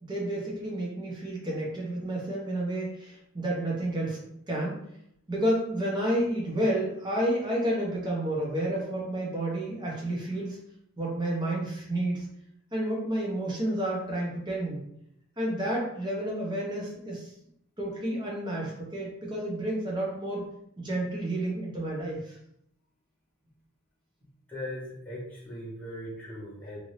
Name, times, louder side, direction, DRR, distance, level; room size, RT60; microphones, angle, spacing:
voice 1, 0.0-4.2 4.5-4.8 5.3-10.6 11.0-12.3 12.7-14.8 15.4-17.3 17.8-20.5 20.8-22.3, right 1 dB, 20° right, -3 dB, 0.8 m, -30 dB
voice 2, 24.5-26.8, left 1 dB, 5° left, -8 dB, 0.9 m, -39 dB
2.6 x 2.6 x 3.1 m, 0.75 s
head